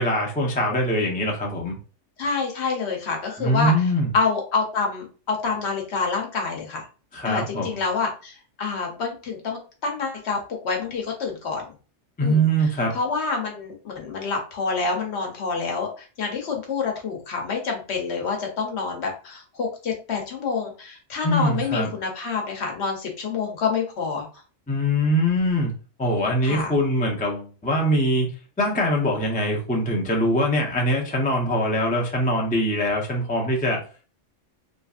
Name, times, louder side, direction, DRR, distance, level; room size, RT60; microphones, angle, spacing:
voice 1, 0.0-1.7 3.4-4.1 7.1-7.8 12.2-12.9 21.2-21.9 24.7-25.7 26.0-28.3 28.6-33.8, equal, 10° left, -1 dB, 0.4 m, -23 dB
voice 2, 2.2-3.9 4.1-6.9 7.2-11.7 12.2-24.3 26.4-26.7, left 4 dB, 65° left, 1 dB, 1.0 m, -27 dB
3.0 x 2.5 x 2.4 m, 0.37 s
omnidirectional pair, 1.3 m